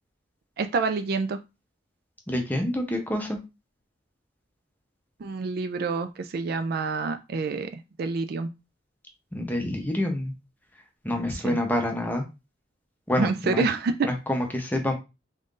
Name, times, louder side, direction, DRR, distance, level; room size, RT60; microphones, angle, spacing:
voice 1, 0.6-1.4 5.2-8.5 11.3-11.6 13.2-14.1, right 4 dB, 55° right, 9 dB, 0.4 m, -27 dB
voice 2, 2.3-3.4 9.3-10.3 11.0-12.2 13.1-13.6 14.0-14.9, left 1 dB, 10° left, 3 dB, 0.7 m, -27 dB
3.6 x 2.6 x 3.7 m, 0.26 s
head